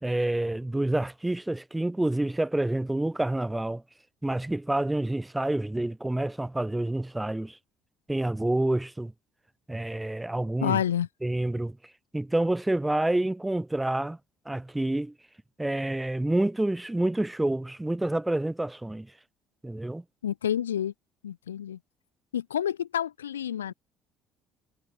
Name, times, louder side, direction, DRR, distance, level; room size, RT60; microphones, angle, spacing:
voice 1, 0.0-3.8 4.2-7.6 8.1-9.1 9.7-10.8 11.2-11.8 12.1-14.2 14.5-15.1 15.6-19.1 19.6-20.0, right 1 dB, 10° right, 0.4 m, -28 dB
voice 2, 10.6-11.1 20.2-20.9 21.2-21.8 22.3-23.7, left 10 dB, 85° left, 0.5 m, -29 dB
hypercardioid pair, 55°, 0 cm